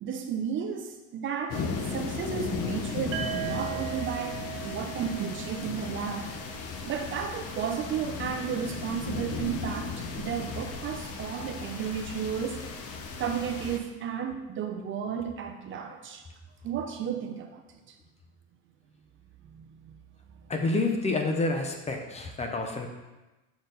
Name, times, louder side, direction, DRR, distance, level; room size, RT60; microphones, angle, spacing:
voice 1, 0.0-6.3 6.8-16.2 16.6-17.6 19.5-19.9, right 7 dB, 40° right, 5 dB, 0.6 m, -33 dB
sound 1, 1.5-13.8, left 4 dB, 50° left, 0.8 m, -36 dB
sound 2, 3.1-7.0, right 12 dB, 80° right, 0.7 m, -38 dB
voice 2, 20.5-22.9, left 2 dB, 20° left, 4 dB, 0.7 m, -28 dB
6.8 x 4.4 x 3.9 m, 1.1 s
cardioid pair, 130°, 32 cm